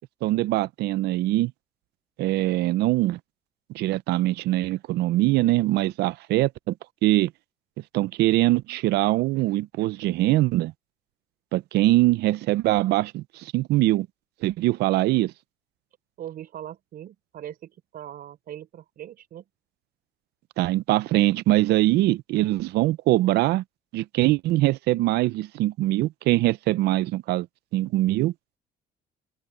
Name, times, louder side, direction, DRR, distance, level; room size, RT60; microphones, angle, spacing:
voice 1, 0.2-1.5 2.2-3.2 3.7-6.7 7.0-7.3 7.9-10.7 11.5-14.1 14.4-15.3 20.6-23.6 23.9-27.5 27.7-28.3, right 17 dB, 80° right, 0.6 m, -22 dB
voice 2, 16.2-19.4, right 11 dB, 60° right, 4.1 m, -40 dB
cardioid pair, 110°, 17 cm